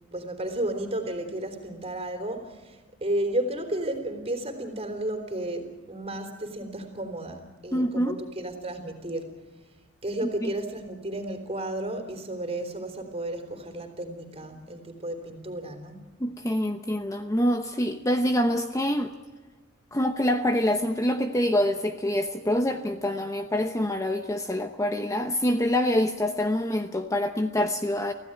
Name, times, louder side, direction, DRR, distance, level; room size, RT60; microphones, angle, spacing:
voice 1, 0.1-9.4 10.0-16.0, right 1 dB, 30° right, 6 dB, 3.6 m, -33 dB
voice 2, 7.7-8.2 10.2-10.5 16.2-19.1 19.9-28.1, left 1 dB, 15° left, 6 dB, 0.9 m, -26 dB
25.5 x 16.0 x 9.1 m, 1.3 s
head